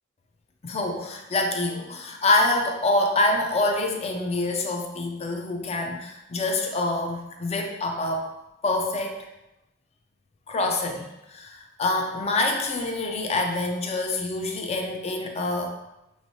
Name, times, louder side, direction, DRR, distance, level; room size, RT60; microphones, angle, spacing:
voice 1, 0.6-8.3 8.6-9.2 10.5-15.8, left 2 dB, 30° left, 3 dB, 0.4 m, -26 dB
6.0 x 3.2 x 2.7 m, 0.94 s
head